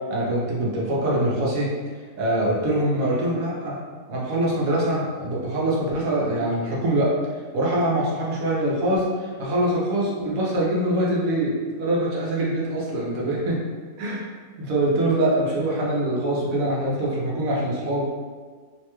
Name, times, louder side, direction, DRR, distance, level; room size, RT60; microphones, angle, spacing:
voice 1, 0.1-1.7 2.2-3.8 4.1-7.1 7.5-13.6 14.0-14.3 14.6-18.0, right 1 dB, 90° right, -4 dB, 1.2 m, -24 dB
3.1 x 2.2 x 3.0 m, 1.6 s
omnidirectional pair, 1.4 m